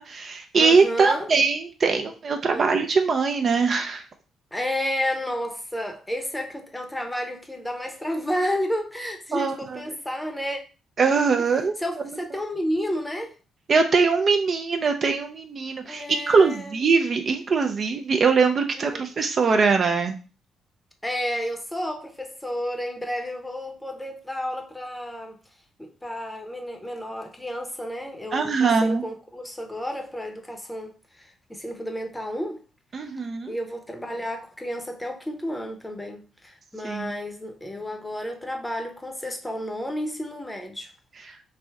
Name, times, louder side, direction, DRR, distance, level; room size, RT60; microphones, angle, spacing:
voice 1, 0.0-4.0 9.3-9.8 11.0-11.7 13.7-20.2 28.3-29.0 32.9-33.5 36.8-37.1, right 4 dB, 45° right, 0.5 m, -22 dB
voice 2, 0.6-1.3 2.5-2.7 4.5-10.6 11.4-11.5 11.8-13.4 15.8-16.8 18.8-19.1 21.0-25.4 25.8-32.6 33.5-40.9, equal, 10° left, 0.7 m, -31 dB
3.3 x 2.6 x 3.4 m
cardioid pair, 90°, 0 cm